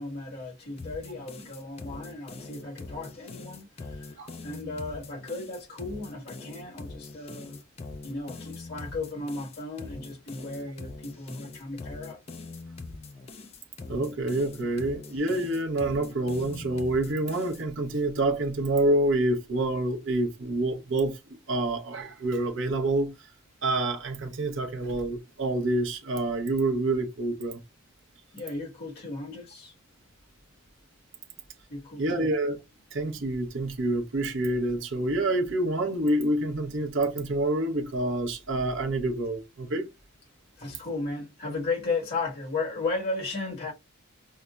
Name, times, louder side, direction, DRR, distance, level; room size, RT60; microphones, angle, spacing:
voice 1, 0.0-7.6 8.0-12.2 14.6-14.7 28.3-29.7 31.7-32.3 40.6-43.7, left 3 dB, 45° left, 1.4 m, -35 dB
sound 1, 0.8-17.6, left 3 dB, 30° left, 0.3 m, -43 dB
voice 2, 13.9-21.2 21.5-23.1 23.6-27.6 32.0-32.6 32.9-39.9, right 2 dB, 60° right, 0.7 m, -27 dB
5.4 x 2.0 x 2.3 m
head